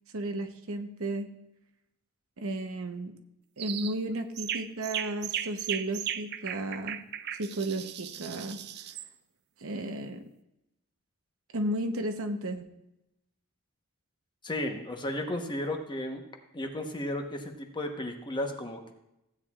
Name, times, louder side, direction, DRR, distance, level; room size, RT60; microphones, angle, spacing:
voice 1, 0.1-1.3 2.4-3.1 3.6-7.0 7.4-8.6 9.6-10.2 11.5-12.7, right 1 dB, 65° right, 6 dB, 0.9 m, -33 dB
sound 1, 3.6-4.0 4.4-9.1, right 10 dB, 50° right, 0.4 m, -36 dB
voice 2, 14.4-16.2 16.5-18.9, left 1 dB, 20° left, 3 dB, 1.0 m, -34 dB
15.5 x 9.0 x 2.4 m, 0.87 s
head